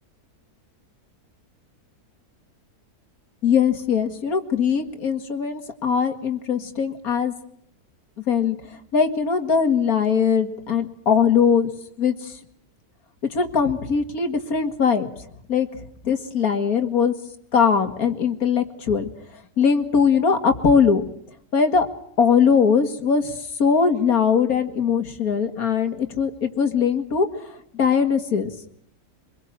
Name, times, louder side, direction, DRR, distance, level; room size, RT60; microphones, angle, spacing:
voice 1, 3.4-7.3 8.3-8.6 8.9-11.7 12.0-12.1 13.3-15.1 15.5-15.7 16.0-17.1 17.5-19.1 19.6-21.0 21.5-21.9 22.2-23.3 23.6-27.3 27.7-28.5, left 6 dB, 65° left, 7 dB, 2.5 m, -20 dB
25.5 x 22.0 x 7.5 m, 0.68 s
omnidirectional pair, 1.7 m